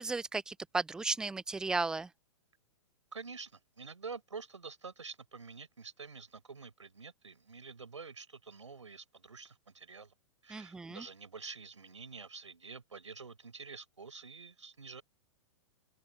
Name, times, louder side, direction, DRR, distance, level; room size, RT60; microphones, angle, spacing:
voice 1, 0.0-2.1 10.5-11.0, right 3 dB, 5° right, 0.4 m, -35 dB
voice 2, 3.1-10.1 10.4-15.0, right 5 dB, 75° right, 6.2 m, -48 dB
figure-of-eight pair, 105°, 16 cm